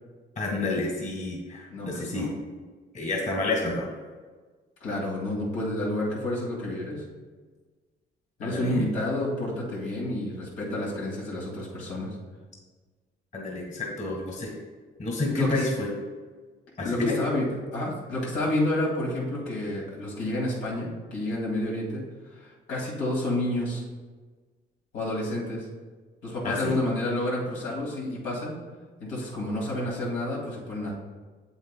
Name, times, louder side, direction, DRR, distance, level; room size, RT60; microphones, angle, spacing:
voice 1, 0.4-2.3 2.9-3.9 8.4-8.9 13.3-14.5 15.0-15.9 16.8-17.2 26.4-26.8, left 2 dB, 40° left, 0 dB, 1.5 m, -29 dB
voice 2, 1.7-2.3 4.8-7.0 8.4-12.2 15.3-15.6 16.8-17.5 17.7-22.0 22.3-23.8 24.9-25.7 26.2-28.5 29.0-30.9, left 1 dB, 80° left, -4 dB, 2.1 m, -30 dB
7.8 x 7.7 x 2.2 m, 1.4 s
cardioid pair, 90°, 20 cm